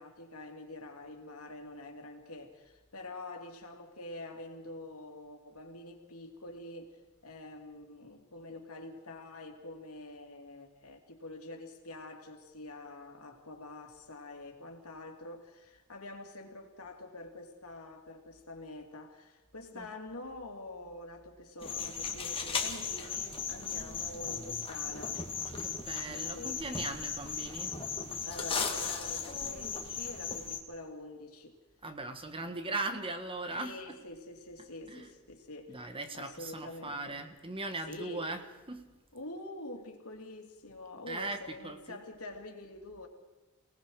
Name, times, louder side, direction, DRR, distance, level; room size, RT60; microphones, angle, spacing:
voice 1, 0.0-25.2 26.1-26.6 28.2-31.6 33.5-37.2 37.9-38.3 39.1-43.1, left 2 dB, 80° left, 3 dB, 2.9 m, -46 dB
sound 1, 21.6-30.6, left 6 dB, 25° left, 2.3 m, -36 dB
voice 2, 25.3-27.8 31.8-34.0 34.9-35.1 35.7-38.8 41.1-42.0, right 2 dB, 25° right, 7 dB, 1.5 m, -39 dB
29.0 x 18.5 x 4.8 m, 1.1 s
head